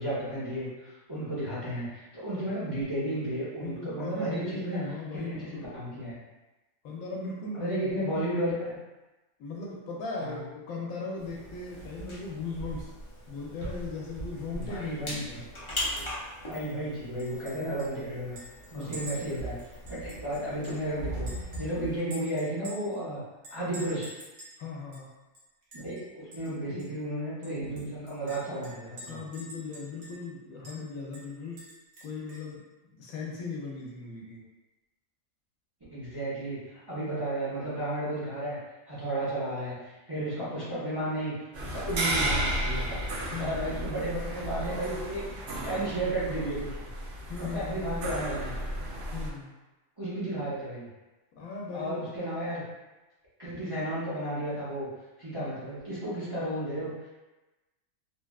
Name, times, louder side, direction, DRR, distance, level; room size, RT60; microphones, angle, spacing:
voice 1, 0.0-4.8 5.1-6.2 7.5-8.8 10.2-10.4 14.5-15.2 16.5-18.4 18.7-19.6 19.9-21.3 21.6-23.2 23.5-24.1 25.7-29.2 35.9-38.6 38.9-41.3 41.6-46.9 47.4-48.6 50.0-50.9 51.7-52.6 53.4-54.9 55.2-56.9, right 1 dB, 20° right, -11 dB, 0.7 m, -33 dB
voice 2, 3.6-5.7 6.8-8.3 9.4-12.9 13.3-15.4 18.7-19.1 24.6-25.1 26.6-26.9 29.1-31.6 32.0-32.6 32.9-34.4 40.2-40.3 43.3-43.8 47.3-47.9 49.1-49.5 51.3-52.2, left 3 dB, 80° left, -3 dB, 1.1 m, -38 dB
sound 1, 11.2-22.0, equal, 45° left, 0.3 m, -40 dB
Chink clink, 17.2-17.5 17.8-17.9 18.4-20.9 21.3-23.0 23.4-24.6 24.9-25.0 25.3-26.0 26.3-26.5 26.8-26.9 27.4-30.3 30.6-30.8 31.1-32.5, right 1 dB, 55° right, 0.9 m, -47 dB
sound 2, 41.5-49.3, right 1 dB, 70° right, 0.5 m, -33 dB
3.1 x 2.3 x 2.3 m, 1.1 s
omnidirectional pair, 1.4 m